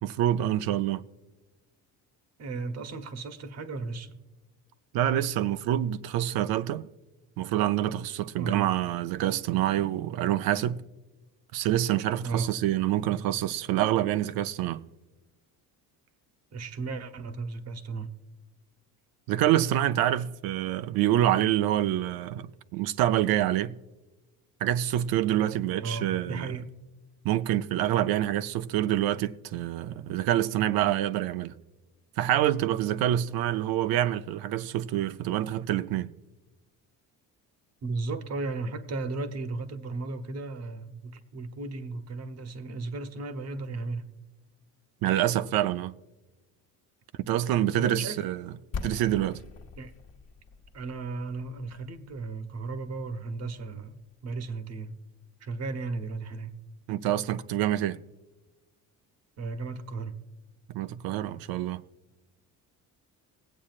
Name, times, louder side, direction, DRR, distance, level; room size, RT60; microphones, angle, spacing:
voice 1, 0.0-1.0 4.9-6.9 7.4-10.8 11.5-14.8 19.3-23.8 24.6-26.5 27.2-31.6 32.2-36.1 45.0-46.0 47.2-48.4 48.8-49.4 56.9-58.0 60.7-61.8, right 12 dB, 85° right, 0.6 m, -26 dB
voice 2, 2.4-4.2 8.4-8.7 12.2-12.5 16.5-18.2 25.7-26.7 37.8-44.1 47.7-48.2 49.8-50.0 50.7-55.0 55.4-56.5 59.4-60.2, right 3 dB, 45° right, 1.0 m, -35 dB
sound 1, 48.7-54.5, left 4 dB, 45° left, 1.0 m, -43 dB
21.0 x 8.4 x 2.4 m
cardioid pair, 130°, 35 cm